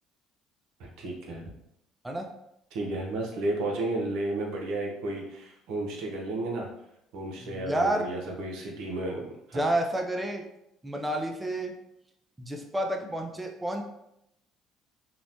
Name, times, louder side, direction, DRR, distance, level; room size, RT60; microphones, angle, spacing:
voice 1, 0.8-1.4 2.7-6.7 7.1-9.2 9.5-9.6, right 2 dB, 75° right, 0 dB, 0.6 m, -32 dB
voice 2, 7.4-8.1 9.5-10.4 10.8-11.7 12.4-13.8, right 1 dB, 15° right, 2 dB, 0.4 m, -29 dB
2.8 x 2.1 x 2.6 m, 0.80 s
supercardioid pair, 75°, 0 cm